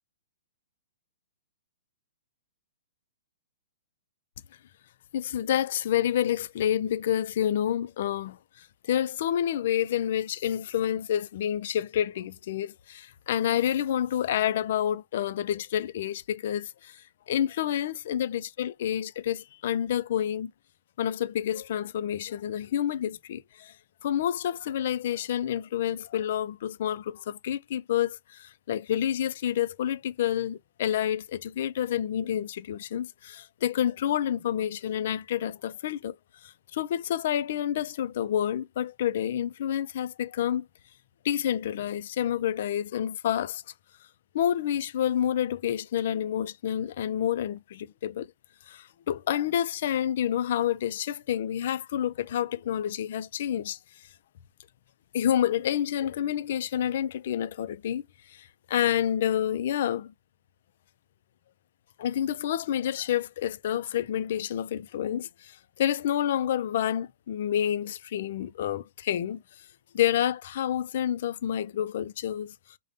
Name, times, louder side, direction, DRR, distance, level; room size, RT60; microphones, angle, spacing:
voice 1, 5.1-20.5 21.0-23.7 24.0-36.2 36.4-40.7 41.2-43.6 44.3-48.3 48.7-54.1 55.1-60.1 62.0-69.4 69.9-72.5, left 10 dB, 45° left, 0.3 m, -29 dB
5.0 x 2.1 x 2.6 m
hypercardioid pair, 170°, 0 cm